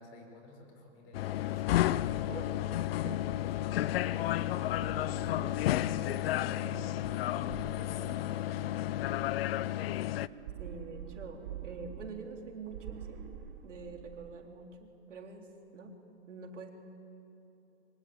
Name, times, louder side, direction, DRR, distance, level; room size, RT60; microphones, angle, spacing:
voice 1, 0.0-8.7 9.0-9.4, left 2 dB, 35° left, 3 dB, 5.3 m, -50 dB
sound 1, 1.1-10.3, left 14 dB, 55° left, 0.6 m, -32 dB
sound 2, 4.6-6.4 7.3-8.8 10.2-12.4 12.7-14.4, right 8 dB, 50° right, 2.8 m, -47 dB
voice 2, 10.6-13.2 13.6-16.0 16.3-16.7, right 4 dB, 90° right, 2 dB, 3.7 m, -45 dB
24.0 x 20.0 x 8.8 m, 3.0 s
hypercardioid pair, 140°, 35 cm